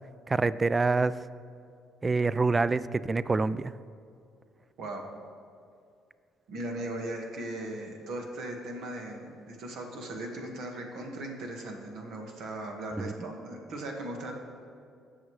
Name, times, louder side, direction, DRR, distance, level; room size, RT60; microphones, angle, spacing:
voice 1, 0.3-1.2 2.0-3.7 13.0-13.1, right 3 dB, 30° right, 17 dB, 0.3 m, -26 dB
voice 2, 6.5-14.3, right 1 dB, 70° right, 1 dB, 1.5 m, -38 dB
16.0 x 6.4 x 3.2 m, 2.4 s
supercardioid pair, 65°, 0 cm